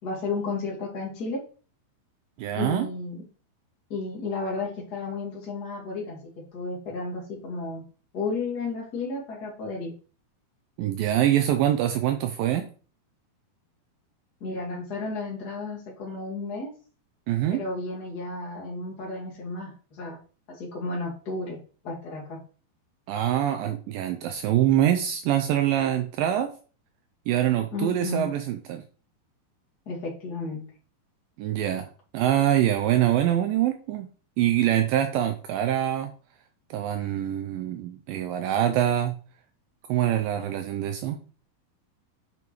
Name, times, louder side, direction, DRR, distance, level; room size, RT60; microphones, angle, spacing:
voice 1, 0.0-1.4 2.5-3.2 3.9-6.2 6.5-7.8 8.1-9.9 14.4-16.7 17.5-20.2 20.6-21.6 21.8-22.4 27.7-28.3 29.9-30.6, left 3 dB, 30° left, -4 dB, 2.1 m, -33 dB
voice 2, 2.4-2.9 10.8-12.7 17.3-17.6 23.1-26.5 27.3-28.8 31.4-31.9 32.1-34.1 34.4-36.1 36.7-39.1 39.9-41.2, right 11 dB, 80° right, 6 dB, 2.1 m, -24 dB
8.3 x 5.3 x 3.1 m, 0.39 s
omnidirectional pair, 4.4 m